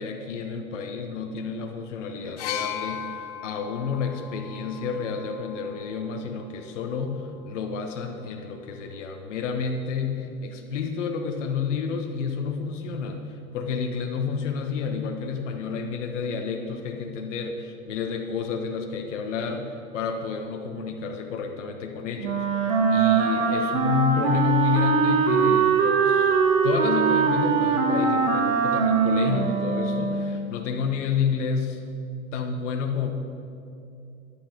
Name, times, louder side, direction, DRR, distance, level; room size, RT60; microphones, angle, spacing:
voice 1, 0.0-13.2 13.5-31.8 32.3-33.1, left 6 dB, 55° left, 4 dB, 1.2 m, -30 dB
sound 1, 2.4-6.2 7.2-7.4, left 9 dB, 30° left, 0.4 m, -37 dB
Wind instrument woodwind instrument, 22.2-30.5, right 5 dB, 65° right, 1.5 m, -22 dB
11.5 x 9.6 x 5.1 m, 2.6 s
figure-of-eight pair, 105°, 44 cm